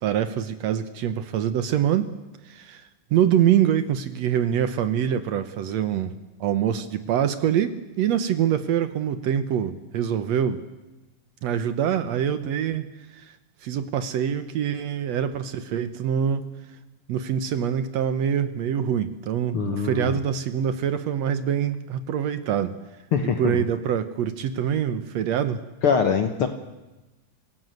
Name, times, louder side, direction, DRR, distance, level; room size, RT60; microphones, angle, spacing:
voice 1, 0.0-2.1 2.4-6.1 6.4-10.6 11.4-12.9 13.1-13.3 13.6-16.5 17.1-22.8 23.4-25.6, right 9 dB, 70° right, 11 dB, 1.6 m, -25 dB
voice 2, 19.5-20.2 23.1-23.6 25.8-26.5, left 6 dB, 65° left, 6 dB, 1.4 m, -23 dB
27.0 x 17.0 x 7.9 m, 1.1 s
omnidirectional pair, 4.2 m